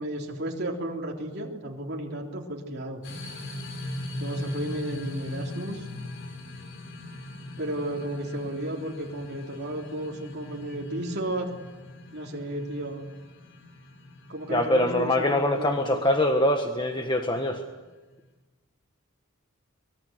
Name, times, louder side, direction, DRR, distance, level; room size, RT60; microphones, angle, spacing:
voice 1, 0.0-3.0 4.2-5.8 7.6-11.5 12.1-13.1 14.3-16.0, right 1 dB, 50° right, -1 dB, 3.5 m, -33 dB
sound 1, 3.0-18.1, left 1 dB, 60° left, 4.4 m, -41 dB
voice 2, 14.5-17.6, left 1 dB, 20° left, 4 dB, 1.4 m, -24 dB
24.5 x 22.0 x 8.1 m, 1.2 s
head